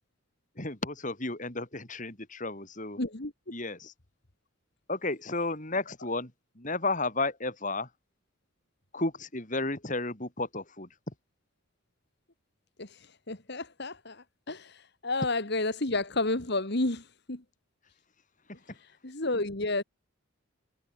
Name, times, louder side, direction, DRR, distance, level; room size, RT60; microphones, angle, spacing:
voice 1, 0.6-3.0 3.5-3.9 4.9-6.3 6.6-7.9 8.9-10.9, left 2 dB, 35° left, 4.1 m, -33 dB
voice 2, 3.0-3.3 12.8-17.4 18.7-19.8, left 2 dB, 55° left, 2.1 m, -31 dB
head